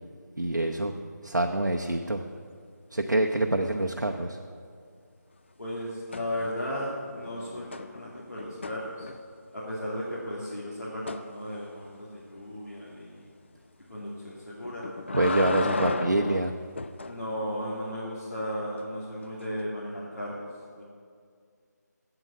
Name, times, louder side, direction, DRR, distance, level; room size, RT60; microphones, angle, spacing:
voice 1, 0.4-0.9 1.2-2.2 2.9-4.4 15.1-16.5, right 1 dB, 90° right, 3 dB, 0.7 m, -26 dB
voice 2, 5.6-9.1 9.5-13.3 13.9-14.9 15.6-15.9 17.0-20.8, equal, 70° left, -7 dB, 2.5 m, -35 dB
sound 1, 6.1-6.8 7.1-9.5 11.1-11.3 14.6-17.2 19.4-19.5, left 3 dB, 40° left, 0.4 m, -34 dB
8.1 x 7.7 x 8.3 m, 2.2 s
figure-of-eight pair, 160°, 10 cm